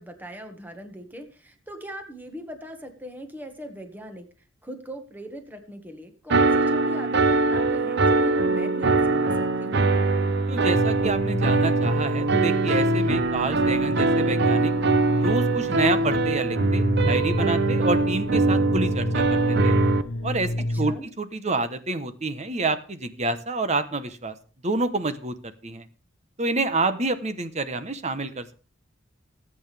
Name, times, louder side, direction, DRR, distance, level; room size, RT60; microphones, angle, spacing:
voice 1, 0.0-4.3 4.6-9.9 20.7-21.1, equal, 10° right, 5 dB, 1.7 m, -40 dB
sound 1, 6.3-20.0, right 3 dB, 60° right, 0.7 m, -22 dB
voice 2, 10.5-14.7 15.1-19.8 20.2-24.3 24.6-25.9 26.4-28.5, right 3 dB, 35° right, 11 dB, 1.1 m, -28 dB
sound 2, 10.7-21.0, left 1 dB, 85° left, 1.0 m, -29 dB
20.0 x 8.7 x 3.5 m, 0.38 s
head